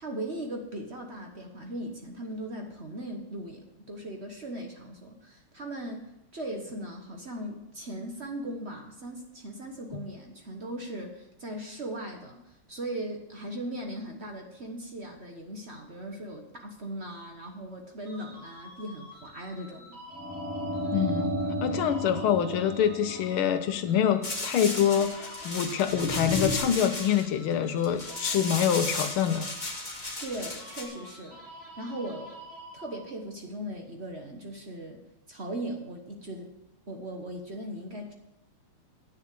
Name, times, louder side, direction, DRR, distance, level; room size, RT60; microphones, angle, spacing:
voice 1, 0.0-19.9 30.2-31.4 31.8-32.4 32.7-35.0 35.3-36.5 36.9-38.1, right 1 dB, 40° right, 2 dB, 1.2 m, -38 dB
sound 1, 18.1-33.3, equal, 75° right, 4.1 m, -48 dB
sound 2, 20.1-24.1 25.9-26.6, equal, 15° right, 0.6 m, -33 dB
voice 2, 20.9-21.3 21.6-29.5, left 9 dB, 90° left, 9 dB, 1.7 m, -26 dB
sound 3, 24.2-30.8, left 2 dB, 25° left, 1.5 m, -35 dB
9.5 x 6.5 x 8.3 m, 0.90 s
omnidirectional pair, 2.3 m